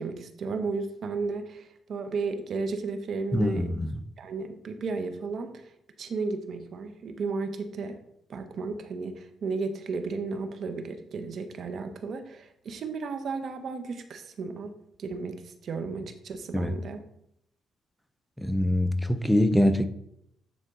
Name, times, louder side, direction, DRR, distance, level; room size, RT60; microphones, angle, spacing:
voice 1, 0.0-3.7 4.2-5.7 6.0-8.0 8.3-17.0, right 4 dB, 60° right, 0.9 m, -34 dB
voice 2, 3.3-4.0 16.5-16.7 18.4-19.9, left 1 dB, 5° left, 0.6 m, -24 dB
9.4 x 4.4 x 3.7 m
cardioid pair, 90°, 0 cm